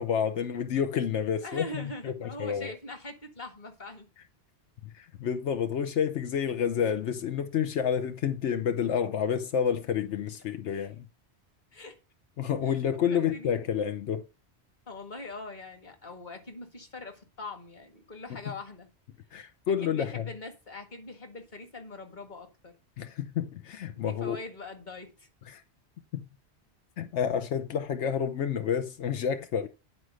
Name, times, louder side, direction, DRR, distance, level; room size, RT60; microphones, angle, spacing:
voice 1, 0.0-2.7 4.8-11.1 12.4-14.2 18.3-18.4 19.3-20.3 23.0-24.4 25.5-25.6 26.1-26.3 27.0-29.7, left 8 dB, 85° left, 1.1 m, -29 dB
voice 2, 1.4-4.1 10.6-10.9 11.7-12.0 13.1-13.5 14.9-18.9 19.7-22.7 24.0-25.3, left 2 dB, 45° left, 1.7 m, -42 dB
9.8 x 4.5 x 6.3 m
omnidirectional pair, 1.1 m